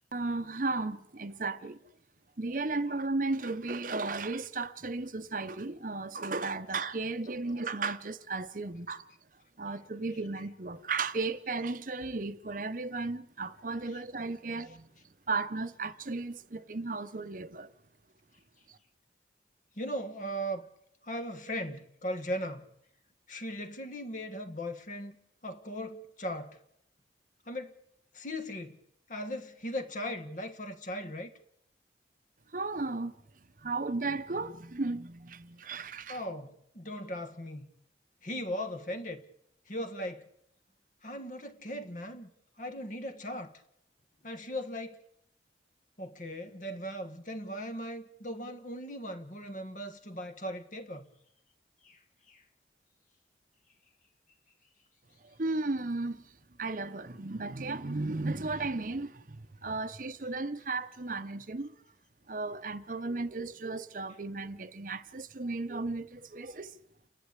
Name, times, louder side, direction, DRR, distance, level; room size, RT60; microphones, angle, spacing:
voice 1, 0.1-1.8 2.4-9.0 9.6-14.9 15.3-17.7 18.7-18.8 32.5-33.1 33.6-36.2 55.4-56.3 56.6-61.7 62.3-66.8, right 3 dB, 45° right, 0.8 m, -35 dB
voice 2, 19.8-20.7 21.0-22.6 23.3-25.1 25.4-26.6 27.5-27.8 28.1-28.8 29.1-31.3 36.1-37.7 38.2-39.2 39.7-40.2 41.0-42.3 42.6-43.5 44.2-45.0 46.0-51.1 51.8-52.0 52.3-52.4, equal, 45° left, 1.5 m, -38 dB
29.0 x 11.5 x 8.2 m
head